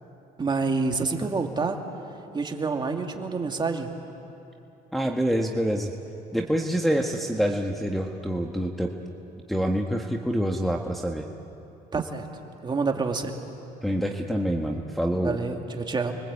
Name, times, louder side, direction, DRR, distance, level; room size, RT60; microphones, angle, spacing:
voice 1, 0.4-1.8 2.3-3.9 11.9-12.3 12.6-13.3 15.2-16.1, right 4 dB, 25° right, 3 dB, 2.4 m, -27 dB
voice 2, 4.9-5.9 6.3-8.9 9.5-11.2 13.8-15.4, equal, ahead, 0 dB, 1.5 m, -26 dB
30.0 x 22.5 x 8.5 m, 2.9 s
cardioid pair, 110°, 17 cm